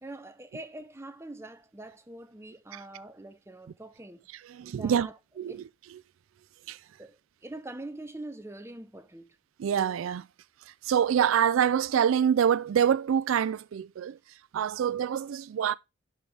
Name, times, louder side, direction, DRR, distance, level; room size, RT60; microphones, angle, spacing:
voice 1, 0.0-4.2 4.8-5.1 5.5-5.6 7.0-9.4, right 2 dB, 15° right, 0.7 m, -43 dB
voice 2, 4.4-5.1 5.4-5.6 6.7-6.8 9.6-10.3 10.7-14.2 14.5-15.7, right 8 dB, 80° right, 0.3 m, -26 dB
11.5 x 4.8 x 3.3 m
head